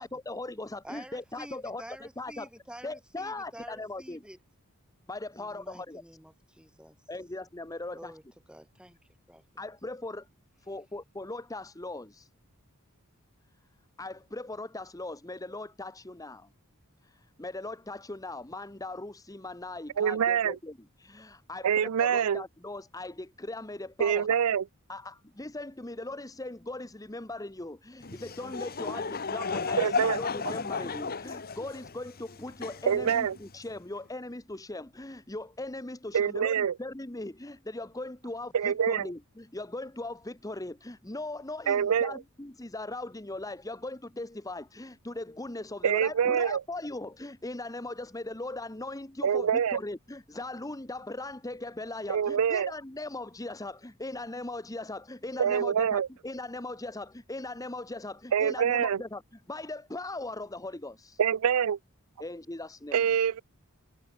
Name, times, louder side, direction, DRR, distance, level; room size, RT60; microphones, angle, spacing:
voice 1, 0.0-2.5 2.8-4.3 5.1-6.0 7.1-8.2 9.6-10.3 10.6-12.3 14.0-16.5 17.0-24.3 24.9-61.2 62.2-63.1, left 2 dB, 15° left, 1.1 m, -39 dB
voice 2, 0.8-4.4 5.3-7.0 7.9-8.2 8.5-9.0 9.3-9.4, right 1 dB, 5° right, 7.9 m, -48 dB
voice 3, 20.0-20.6 21.6-22.4 24.0-24.6 29.8-30.2 32.9-33.4 36.1-36.7 38.5-39.1 41.7-42.2 45.8-46.6 49.2-49.8 52.1-52.7 55.4-56.1 58.3-59.0 61.2-61.8 62.9-63.4, right 8 dB, 80° right, 0.4 m, -25 dB
Laughter / Crowd, 28.0-33.8, left 5 dB, 45° left, 1.4 m, -34 dB
head